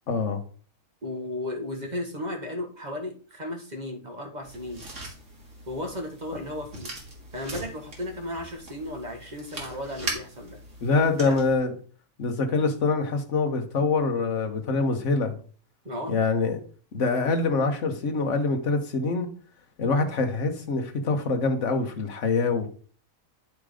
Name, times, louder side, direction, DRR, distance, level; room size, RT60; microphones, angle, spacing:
voice 1, 0.1-0.4 10.8-11.7 12.2-15.4 16.1-16.6 16.9-19.3 19.8-22.7, left 3 dB, 60° left, 4 dB, 1.6 m, -25 dB
voice 2, 1.0-4.8 5.7-6.9 7.3-10.6 11.2-11.4 15.8-16.2, left 1 dB, 35° right, 3 dB, 1.6 m, -35 dB
sound 1, 4.4-11.5, right 2 dB, 65° right, 2.5 m, -40 dB
11.0 x 3.8 x 4.9 m, 0.42 s
omnidirectional pair, 1.4 m